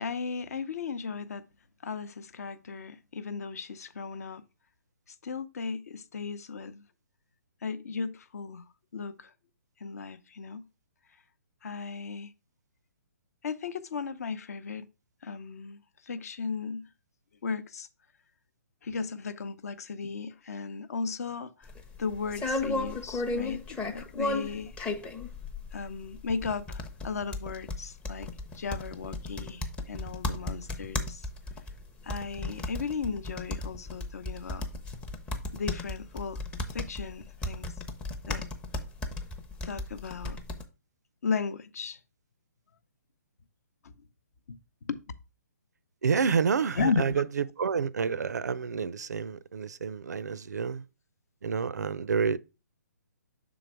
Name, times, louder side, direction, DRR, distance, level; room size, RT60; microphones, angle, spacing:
voice 1, 0.0-1.4 1.8-4.4 5.1-6.8 7.6-8.6 8.9-9.3 9.8-10.7 11.6-12.3 13.4-14.9 15.2-16.9 17.4-17.9 18.8-21.7 22.0-24.8 25.7-28.3 28.5-31.2 32.0-34.7 35.5-36.4 36.7-37.7 38.3-38.4 39.6-40.4 41.2-42.0 43.8-43.9 44.5-45.0 46.7-47.0, left 5 dB, 60° left, 0.7 m, -35 dB
sound 1, 21.7-40.6, left 2 dB, 10° left, 0.6 m, -35 dB
voice 2, 46.0-50.8 51.4-52.4, right 6 dB, 70° right, 0.4 m, -29 dB
6.2 x 3.9 x 4.5 m
figure-of-eight pair, 135°, 9 cm